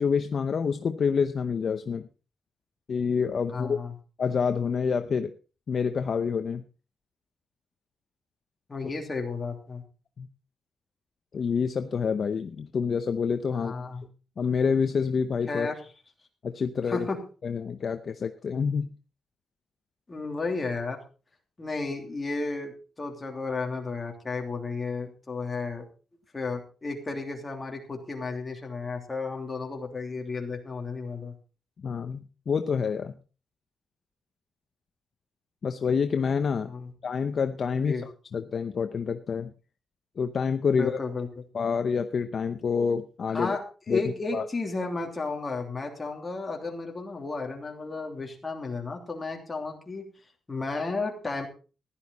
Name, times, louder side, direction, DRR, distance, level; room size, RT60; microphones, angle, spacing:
voice 1, 0.0-2.1 2.9-3.8 4.2-5.3 5.7-6.6 10.2-10.3 11.3-13.7 14.4-15.7 16.4-17.1 17.4-18.9 31.8-33.1 35.6-36.7 37.0-38.0 38.3-39.5 40.2-40.9 41.5-43.6 43.9-44.0 44.3-44.4, left 6 dB, 45° left, 8 dB, 0.8 m, -27 dB
voice 2, 3.4-3.9 8.7-9.8 13.5-14.0 15.5-15.8 16.9-17.2 20.1-21.0 21.6-25.8 26.3-31.3 36.6-36.9 37.8-38.0 40.7-41.3 43.3-43.6 43.9-50.0 50.5-51.5, left 3 dB, 20° left, 1 dB, 3.0 m, -33 dB
15.5 x 11.5 x 4.1 m, 0.35 s
wide cardioid pair, 155°, 0 cm